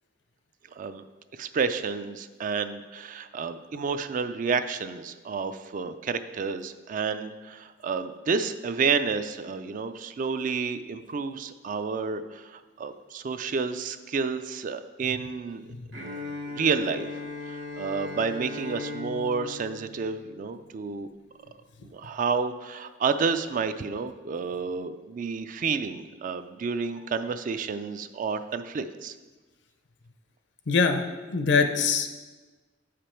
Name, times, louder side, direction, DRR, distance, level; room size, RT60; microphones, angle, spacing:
voice 1, 1.3-15.6 16.5-17.1 17.5-21.1 21.8-29.1, right 5 dB, 45° right, 11 dB, 0.3 m, -30 dB
Bowed string instrument, 15.9-20.8, left 3 dB, 70° right, 1.2 m, -38 dB
voice 2, 30.7-32.1, left 5 dB, 65° left, 7 dB, 0.6 m, -24 dB
7.7 x 5.1 x 4.4 m, 1.3 s
head